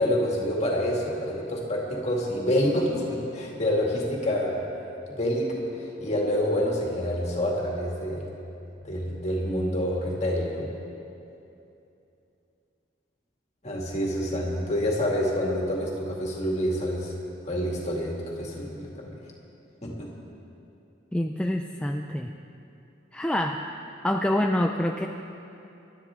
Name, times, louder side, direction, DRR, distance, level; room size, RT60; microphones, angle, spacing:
voice 1, 0.0-4.6 5.2-8.3 8.8-10.7 13.6-17.1 17.4-19.2 19.8-20.1, equal, 35° left, -2 dB, 2.3 m, -27 dB
voice 2, 21.1-22.3 23.1-23.6 24.0-25.1, left 1 dB, 5° left, 2 dB, 0.4 m, -26 dB
25.0 x 12.0 x 3.7 m, 2.8 s
head